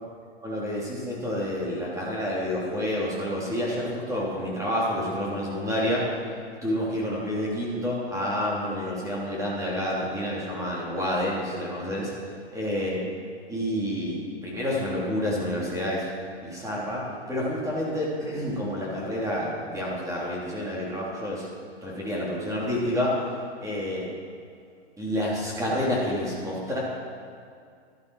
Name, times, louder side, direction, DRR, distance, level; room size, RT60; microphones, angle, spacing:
voice 1, 0.4-6.1 6.6-12.1 12.5-13.0 13.5-16.1 16.3-21.5 21.8-23.3 23.6-24.1 25.0-26.8, left 1 dB, 10° right, -6 dB, 3.2 m, -29 dB
12.0 x 11.0 x 4.9 m, 2.3 s
hypercardioid pair, 125°, 33 cm